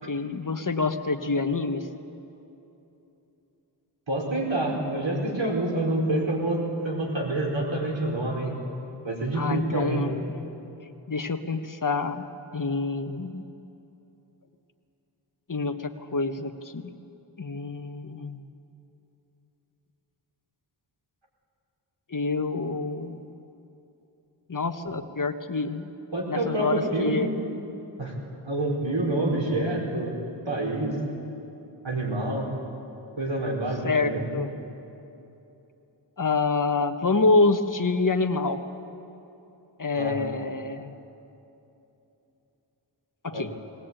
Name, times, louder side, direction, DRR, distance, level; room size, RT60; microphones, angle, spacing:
voice 1, 0.1-1.9 9.3-10.1 11.1-12.2 12.5-13.4 15.5-16.8 17.4-18.4 22.1-23.2 24.5-25.9 26.3-27.3 33.8-34.5 36.2-38.6 39.8-40.9 43.2-43.5, left 3 dB, 45° left, 7 dB, 1.2 m, -27 dB
voice 2, 4.1-8.5 9.0-10.0 26.1-27.3 28.0-28.1 28.4-30.1 30.5-31.0 31.8-32.5 33.2-34.3 40.0-40.2 43.3-43.4, right 1 dB, 80° right, -1 dB, 4.8 m, -27 dB
21.0 x 18.5 x 9.0 m, 2.9 s
wide cardioid pair, 65°, 45 cm